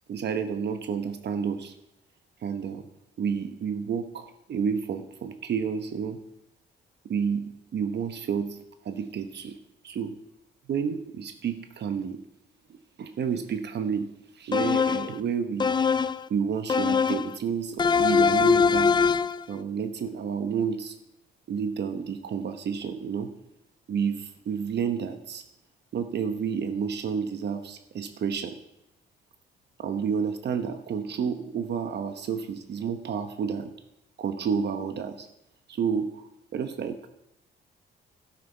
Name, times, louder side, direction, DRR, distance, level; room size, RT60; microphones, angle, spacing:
voice 1, 0.1-1.7 2.4-2.9 3.2-6.2 7.1-8.6 8.8-9.6 9.8-10.2 10.7-12.2 13.0-15.7 16.3-19.0 19.5-21.0 21.5-23.3 23.9-25.4 25.9-28.6 29.8-33.7 34.2-35.3 35.7-37.1, right 6 dB, 60° right, 8 dB, 1.0 m, -30 dB
sound 1, 14.5-15.2 15.6-16.3 16.7-17.4 17.8-19.4, left 5 dB, 20° left, 0.4 m, -22 dB
12.0 x 11.5 x 4.5 m, 0.85 s
cardioid pair, 90°, 20 cm